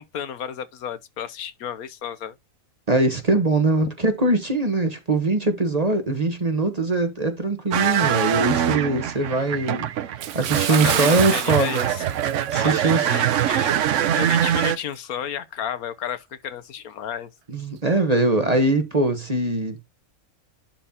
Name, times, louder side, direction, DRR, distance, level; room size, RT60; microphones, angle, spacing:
voice 1, 0.0-2.3 3.8-3.9 10.7-12.0 12.5-17.3, left 9 dB, 75° left, 1.2 m, -32 dB
voice 2, 2.9-9.9 10.3-11.9 12.5-13.1 17.5-19.8, right 2 dB, 30° right, 1.2 m, -22 dB
sound 1, 7.7-14.8, right 10 dB, 60° right, 0.9 m, -23 dB
Bathtub (filling or washing) / Splash splatter, 10.2-13.1 13.4-13.6 14.1-14.2, right 10 dB, 75° right, 1.2 m, -28 dB
11.0 x 4.4 x 2.8 m
omnidirectional pair, 1.6 m